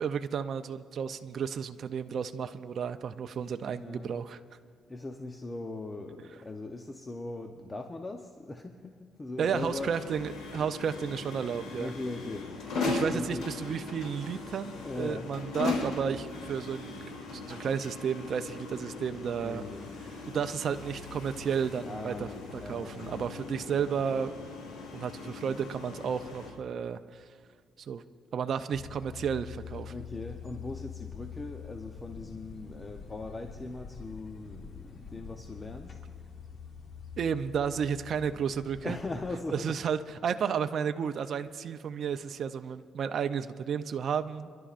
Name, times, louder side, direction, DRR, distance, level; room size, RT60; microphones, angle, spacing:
voice 1, 0.0-4.4 9.4-11.9 12.9-16.9 17.3-19.6 20.3-22.3 22.5-24.3 24.9-27.2 27.8-28.0 28.3-29.9 37.2-39.0 39.5-44.5, right 7 dB, 60° right, 9 dB, 0.5 m, -32 dB
voice 2, 3.8-4.2 4.9-9.9 11.7-12.8 13.1-13.5 14.8-15.3 19.4-19.9 21.8-23.3 29.8-36.0 38.8-39.8, left 2 dB, 25° left, 4 dB, 0.8 m, -40 dB
sound 1, 9.4-26.5, left 3 dB, 70° left, 4.0 m, -38 dB
sound 2, 28.7-39.3, left 7 dB, 50° left, 1.4 m, -45 dB
30.0 x 11.5 x 2.5 m, 2.1 s
cardioid pair, 90°, 0 cm